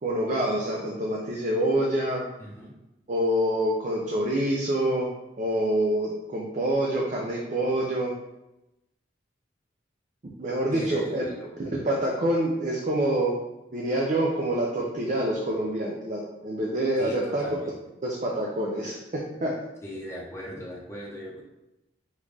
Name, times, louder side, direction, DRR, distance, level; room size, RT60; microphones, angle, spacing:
voice 1, 0.0-2.2 3.1-5.1 5.4-8.1 10.4-11.2 11.7-13.4 13.7-17.4 18.0-19.5, right 1 dB, 40° right, -2 dB, 0.5 m, -26 dB
voice 2, 2.4-2.7 10.7-11.5 17.0-17.8 19.8-21.4, equal, 15° left, -4 dB, 0.9 m, -39 dB
5.1 x 2.5 x 3.3 m, 0.94 s
head